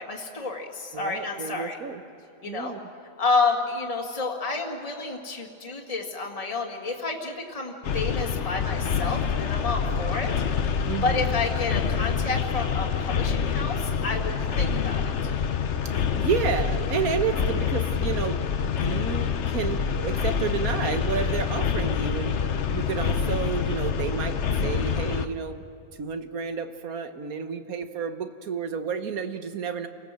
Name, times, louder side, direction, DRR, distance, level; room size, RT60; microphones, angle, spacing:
voice 1, 0.0-1.8 2.4-2.8 3.2-10.3 10.8-15.0, left 3 dB, 25° left, 0 dB, 1.9 m, -30 dB
voice 2, 0.9-2.0 2.4-2.8 10.9-11.4 15.9-22.4 22.7-25.6 26.0-29.9, right 6 dB, 85° right, 8 dB, 1.6 m, -31 dB
sound 1, 7.8-25.3, left 6 dB, 60° left, 1.1 m, -26 dB
29.5 x 18.5 x 7.5 m, 2.5 s
omnidirectional pair, 1.5 m